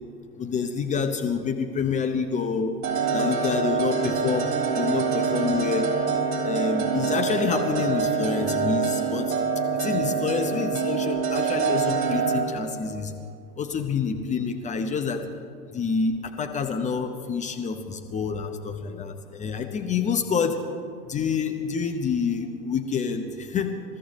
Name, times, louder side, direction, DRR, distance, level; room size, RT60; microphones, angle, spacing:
voice 1, 0.4-2.7 3.1-4.5 4.7-5.9 6.4-9.3 9.8-13.1 13.6-15.2 15.7-20.6 21.1-23.7, left 5 dB, 15° left, 5 dB, 0.8 m, -27 dB
sound 1, 2.8-12.4, right 5 dB, 40° right, 3.6 m, -25 dB
27.0 x 13.5 x 3.1 m, 2.2 s
hypercardioid pair, 115°, 48 cm